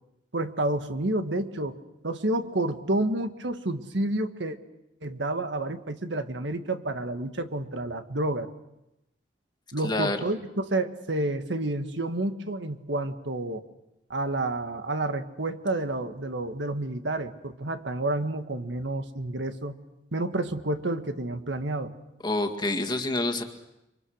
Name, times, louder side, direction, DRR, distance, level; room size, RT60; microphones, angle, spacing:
voice 1, 0.3-1.8 2.0-4.6 5.0-8.5 9.7-13.6 14.1-19.8 20.1-21.9, right 2 dB, 75° right, 8 dB, 1.6 m, -29 dB
voice 2, 9.8-10.3 22.2-23.4, left 2 dB, 25° left, 5 dB, 2.0 m, -27 dB
30.0 x 24.5 x 6.5 m, 0.89 s
head